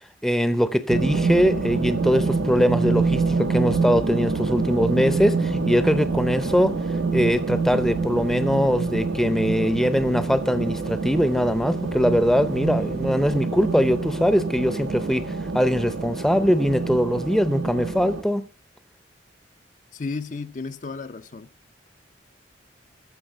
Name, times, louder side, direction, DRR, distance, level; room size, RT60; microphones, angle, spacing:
voice 1, 0.2-6.7 7.1-18.4, equal, ahead, 0.6 m, -22 dB
sound 1, 0.9-18.2, right 4 dB, 80° right, 1.2 m, -26 dB
voice 2, 19.9-21.5, left 4 dB, 45° left, 0.5 m, -33 dB
14.5 x 5.2 x 8.7 m
head